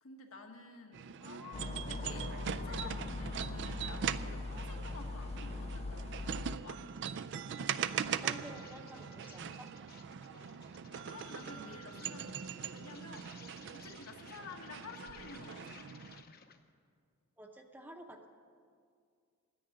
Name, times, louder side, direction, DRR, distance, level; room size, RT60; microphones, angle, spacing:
voice 1, 0.0-6.9 11.0-13.3 13.7-15.9, left 4 dB, 75° left, 2 dB, 1.4 m, -51 dB
sound 1, 0.9-16.2, right 8 dB, 55° right, 0.4 m, -41 dB
sound 2, 1.5-6.6, left 3 dB, 30° left, 0.3 m, -41 dB
Insect, 7.3-16.7, left 7 dB, 45° left, 0.8 m, -58 dB
voice 2, 8.0-9.7 17.4-18.3, right 1 dB, 10° right, 3 dB, 0.8 m, -50 dB
10.0 x 8.9 x 9.9 m, 2.2 s
head